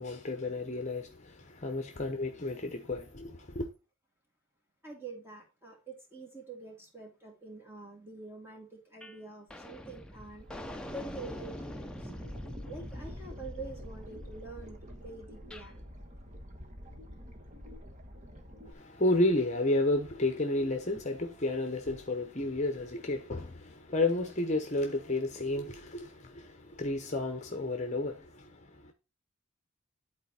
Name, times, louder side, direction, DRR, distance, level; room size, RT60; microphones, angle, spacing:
voice 1, 0.0-3.7 18.7-28.9, left 2 dB, 35° left, 0.9 m, -32 dB
voice 2, 4.8-10.5 10.9-12.1 12.7-15.9, right 3 dB, 10° right, 2.4 m, -46 dB
sound 1, 9.0-9.2 9.5-15.7, equal, 5° left, 0.5 m, -44 dB
sound 2, 10.4-18.7, equal, 35° right, 1.3 m, -49 dB
11.0 x 4.2 x 4.3 m
head